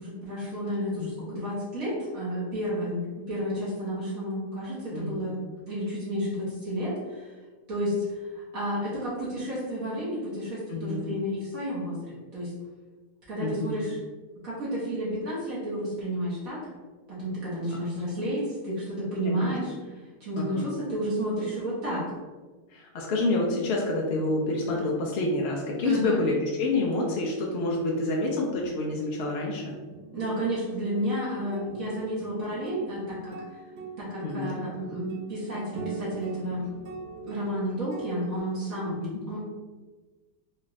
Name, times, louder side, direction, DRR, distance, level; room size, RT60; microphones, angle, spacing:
voice 1, 0.0-5.3 5.6-7.3 7.7-12.5 13.3-14.0 14.4-16.6 17.1-19.9 20.2-22.0 25.8-26.2 30.1-33.6 34.0-36.7 37.3-39.0 39.3-39.4, equal, 60° right, -9 dB, 1.7 m, -31 dB
voice 2, 4.9-5.3 10.7-11.1 13.4-13.8 19.2-19.5 20.3-20.7 22.7-29.7 34.2-34.6 38.8-39.2, left 2 dB, 70° left, -2 dB, 0.6 m, -28 dB
sound 1, 28.5-38.4, right 5 dB, 85° right, 1.2 m, -42 dB
4.3 x 2.5 x 3.1 m, 1.3 s
omnidirectional pair, 1.7 m